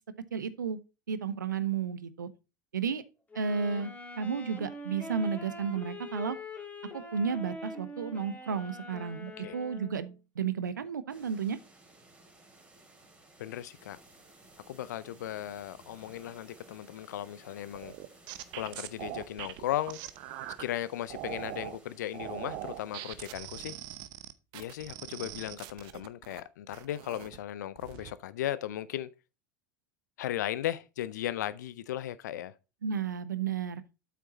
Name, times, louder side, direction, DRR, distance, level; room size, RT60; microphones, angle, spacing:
voice 1, 0.3-0.8 1.1-2.3 2.7-3.0 3.3-6.4 6.9-11.6 32.8-33.8, right 6 dB, 80° right, 0.7 m, -32 dB
Wind instrument woodwind instrument, 3.3-10.1, left 1 dB, 15° left, 2.4 m, -44 dB
sound 1, 11.1-23.3, right 2 dB, 15° right, 3.2 m, -58 dB
voice 2, 13.4-14.0 14.7-17.9 18.5-20.0 20.6-23.8 24.5-29.1 30.2-32.5, left 12 dB, 65° left, 0.5 m, -36 dB
sound 2, 17.7-20.6 21.1-21.8 22.1-26.4 26.7-27.4 27.8-28.1, right 14 dB, 50° right, 0.8 m, -42 dB
8.3 x 5.9 x 4.0 m
figure-of-eight pair, 85°, 10 cm